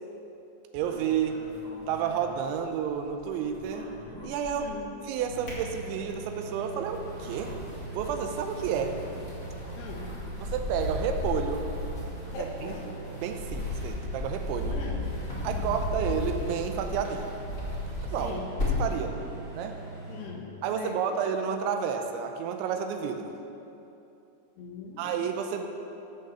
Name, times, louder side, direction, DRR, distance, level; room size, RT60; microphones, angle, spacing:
voice 1, 0.7-1.4 1.9-3.9 4.2-4.7 5.0-7.6 7.9-9.0 10.4-11.7 12.4-12.8 13.2-14.8 15.4-17.3 18.1-18.4 18.8-19.2 19.5-19.8 20.6-23.3 25.0-25.7, right 7 dB, 90° right, 5 dB, 3.0 m, -30 dB
sound 1, 0.8-3.0 3.2-4.8 5.2-6.3 6.8-19.0, left 2 dB, 25° left, 2.1 m, -35 dB
sound 2, 5.2-20.2, right 3 dB, 40° right, 2.2 m, -42 dB
voice 2, 9.8-10.1 12.3-12.9 14.7-15.0 15.4-15.7 18.2-18.5 20.1-20.5 20.8-21.1 24.6-25.2, left 5 dB, 70° left, 0 dB, 3.0 m, -40 dB
14.5 x 5.6 x 7.1 m, 2.9 s
omnidirectional pair, 5.4 m